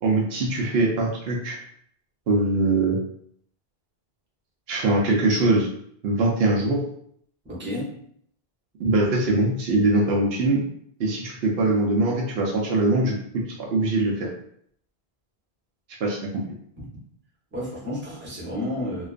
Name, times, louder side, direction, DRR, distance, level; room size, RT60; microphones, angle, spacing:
voice 1, 0.0-1.6 2.3-3.0 4.7-5.7 6.0-6.8 8.8-10.6 11.0-13.2 13.6-14.3 16.0-16.4, right 2 dB, 75° right, -1 dB, 0.8 m, -22 dB
voice 2, 7.4-7.9 16.8-16.9 17.5-19.1, left 1 dB, 15° right, -7 dB, 0.7 m, -31 dB
2.3 x 2.2 x 2.4 m, 0.66 s
omnidirectional pair, 1.0 m